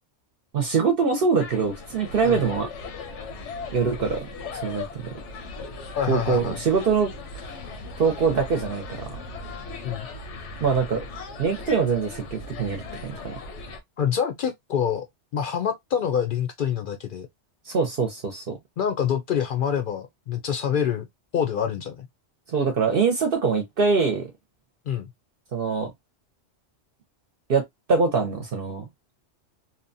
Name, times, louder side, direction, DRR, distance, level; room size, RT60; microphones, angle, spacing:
voice 1, 0.5-2.7 3.7-4.3 4.6-5.2 6.1-7.1 7.4-7.6 8.0-9.2 10.6-11.0 11.4-13.3 17.7-18.6 22.5-24.3 25.5-25.9 27.5-27.6 27.9-28.8, right 5 dB, 60° right, 0.8 m, -23 dB
sound 1, 1.4-13.8, left 3 dB, 85° left, 1.0 m, -38 dB
voice 2, 5.9-6.6 9.8-10.1 14.0-15.1 15.3-17.3 18.8-21.1 21.3-22.1 24.9-25.1, left 8 dB, 60° left, 0.6 m, -26 dB
2.8 x 2.1 x 2.5 m
omnidirectional pair, 1.2 m